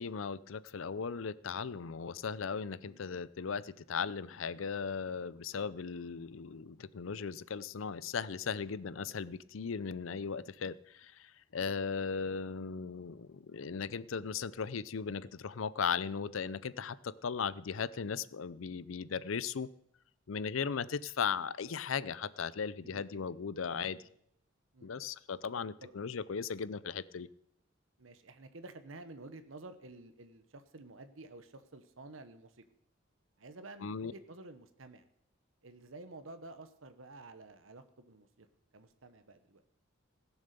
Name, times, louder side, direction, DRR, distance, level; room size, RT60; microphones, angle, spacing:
voice 1, 0.0-19.7 20.3-24.0 24.8-27.3 33.8-34.1, left 6 dB, 85° left, 18 dB, 0.6 m, -37 dB
voice 2, 11.6-11.9 22.8-23.2 23.7-24.1 24.7-25.1 25.8-26.0 28.0-32.6 33.4-35.0 35.6-38.5 38.7-39.6, right 2 dB, 85° right, 10 dB, 1.1 m, -51 dB
16.5 x 7.2 x 6.7 m, 0.73 s
head